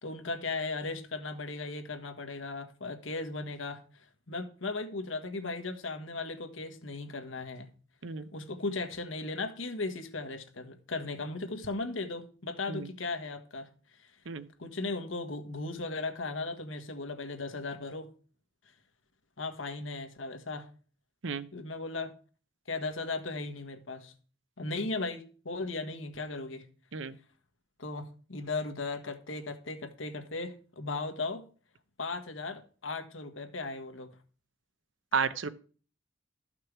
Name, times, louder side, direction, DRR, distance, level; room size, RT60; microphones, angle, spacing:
voice 1, 0.0-3.8 4.3-7.7 8.3-13.7 14.6-18.1 19.4-20.7 21.5-22.1 22.7-24.1 24.6-26.6 27.8-31.4 32.0-34.1, left 3 dB, 90° left, 1.5 m, -37 dB
voice 2, 35.1-35.5, right 5 dB, 80° right, 0.7 m, -32 dB
13.5 x 6.0 x 4.8 m
head